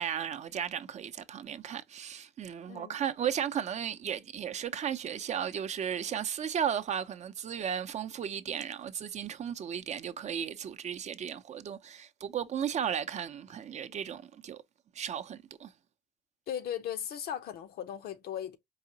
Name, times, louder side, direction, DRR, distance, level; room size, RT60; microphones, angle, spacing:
voice 1, 0.0-14.6 14.9-15.7, right 8 dB, 45° right, 0.5 m, -35 dB
voice 2, 2.7-3.0 16.5-18.6, left 10 dB, 65° left, 0.7 m, -37 dB
4.8 x 2.8 x 2.7 m
cardioid pair, 110°, 17 cm